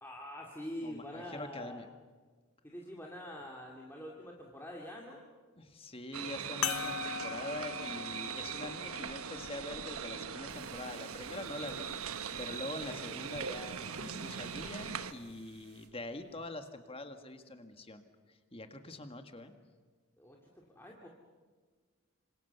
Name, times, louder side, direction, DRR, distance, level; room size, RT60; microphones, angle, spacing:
voice 1, 0.0-1.9 2.6-5.2 20.2-21.1, left 1 dB, 10° left, -1 dB, 2.4 m, -45 dB
voice 2, 0.8-1.9 5.6-11.9 12.4-18.0 18.3-19.5, left 2 dB, 25° left, 7 dB, 1.8 m, -44 dB
sound 1, 6.1-15.1, right 7 dB, 90° right, 1.3 m, -41 dB
sound 2, 6.6-11.4 12.2-12.3 14.4-14.6, left 8 dB, 90° left, 1.3 m, -41 dB
sound 3, 10.5-15.9, right 1 dB, 45° right, 3.5 m, -56 dB
27.0 x 26.0 x 6.9 m, 1.5 s
head